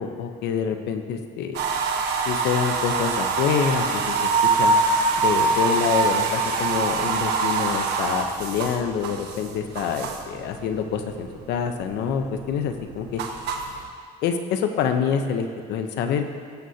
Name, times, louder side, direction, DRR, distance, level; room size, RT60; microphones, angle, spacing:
voice 1, 0.0-1.6 2.3-4.8 5.2-13.2 14.2-16.3, left 7 dB, 85° left, 6 dB, 0.9 m, -26 dB
sound 1, 1.5-10.4 10.8-11.4 11.8-13.8, right 4 dB, 80° right, 1.2 m, -24 dB
20.5 x 7.7 x 2.8 m, 2.1 s
cardioid pair, 110°, 17 cm